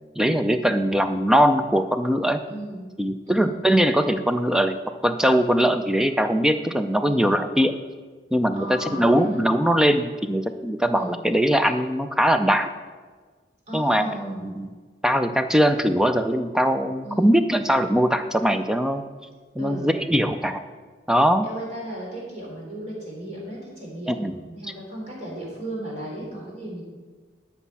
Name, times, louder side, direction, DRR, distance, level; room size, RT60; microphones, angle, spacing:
voice 1, 0.2-2.4 3.0-4.8 5.0-7.7 8.3-12.7 13.7-14.7 15.0-19.0 19.6-20.6 21.1-21.5 24.1-24.4, equal, 5° right, 8 dB, 0.4 m, -21 dB
voice 2, 2.5-2.9 3.3-3.6 7.0-7.4 8.5-9.4 10.9-11.2 13.7-14.5 17.0-17.4 19.6-20.0 21.4-26.8, right 1 dB, 35° right, -3 dB, 3.6 m, -36 dB
13.0 x 5.9 x 5.6 m, 1.4 s
head